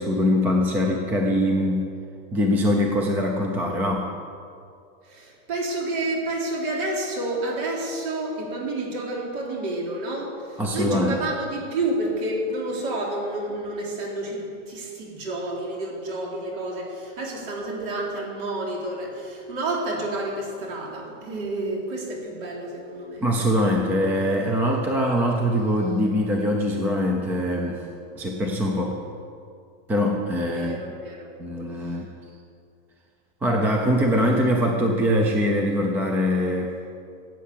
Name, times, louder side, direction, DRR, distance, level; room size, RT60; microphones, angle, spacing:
voice 1, 0.0-1.9 2.3-4.1 10.6-11.2 23.2-27.8 28.2-29.0 29.9-30.8 31.4-32.1 33.4-36.7, equal, 5° right, 1 dB, 0.5 m, -23 dB
voice 2, 5.1-23.2 30.5-31.3 31.9-32.0, right 2 dB, 45° right, -1 dB, 3.8 m, -29 dB
15.5 x 8.5 x 8.4 m, 2.4 s
supercardioid pair, 170°, 37 cm